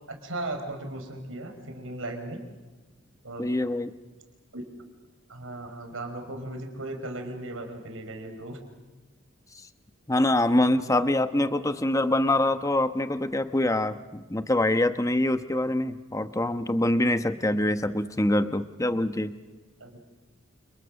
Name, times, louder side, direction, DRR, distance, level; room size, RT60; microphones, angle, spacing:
voice 1, 0.1-2.4 3.2-3.5 4.5-4.6 5.3-8.6 10.7-11.2 19.8-20.0, right 2 dB, 85° right, 5 dB, 5.1 m, -37 dB
voice 2, 3.4-3.9 10.1-19.3, left 1 dB, 15° left, 10 dB, 1.0 m, -25 dB
29.0 x 29.0 x 6.5 m, 1.2 s
head